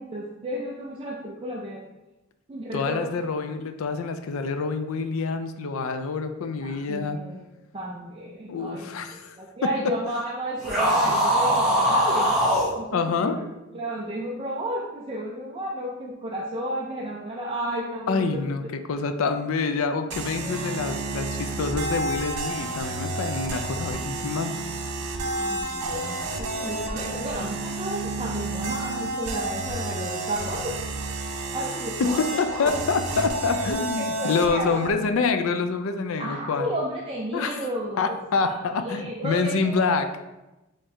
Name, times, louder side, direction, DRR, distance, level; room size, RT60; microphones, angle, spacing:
voice 1, 0.0-1.8 2.5-3.2 6.6-8.9 9.1-12.4 12.8-13.4 13.7-18.4 19.2-19.3 20.4-20.7 25.2-30.9 31.5-32.2 32.6-32.9 33.7-34.9 36.2-38.2 38.4-39.9, right 1 dB, 25° right, -3 dB, 0.4 m, -33 dB
voice 2, 2.7-7.2 8.5-9.4 9.8-9.9 12.9-13.4 18.1-18.6 18.9-24.6 32.0-36.7 37.3-37.6 38.0-40.1, left 4 dB, 65° left, 9 dB, 0.4 m, -26 dB
sound 1, 10.6-12.7, equal, ahead, 1.0 m, -21 dB
sound 2, 20.1-34.9, right 2 dB, 85° right, 0.6 m, -31 dB
4.3 x 3.2 x 3.6 m, 1.0 s
head